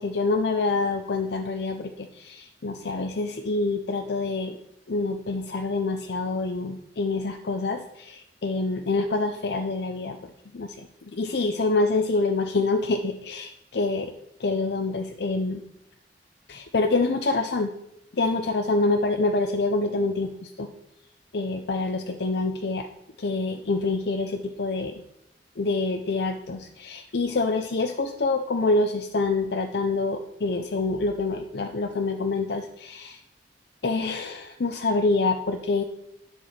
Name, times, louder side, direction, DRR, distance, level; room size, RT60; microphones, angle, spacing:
voice 1, 0.0-4.6 4.9-10.2 10.5-14.1 14.4-15.6 16.5-17.7 18.1-20.7 21.3-22.9 23.2-25.0 25.6-33.2 33.8-35.8, left 3 dB, 65° left, 6 dB, 0.6 m, -26 dB
11.0 x 4.8 x 5.7 m, 0.82 s
head